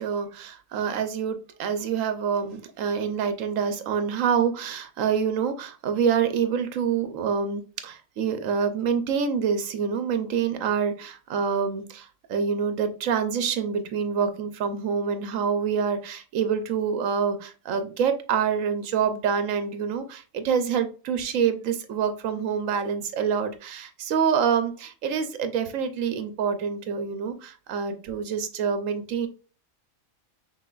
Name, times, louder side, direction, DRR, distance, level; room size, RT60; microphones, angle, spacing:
voice 1, 0.0-29.3, right 7 dB, 80° right, 9 dB, 1.1 m, -26 dB
5.8 x 3.7 x 2.4 m, 0.36 s
omnidirectional pair, 1.3 m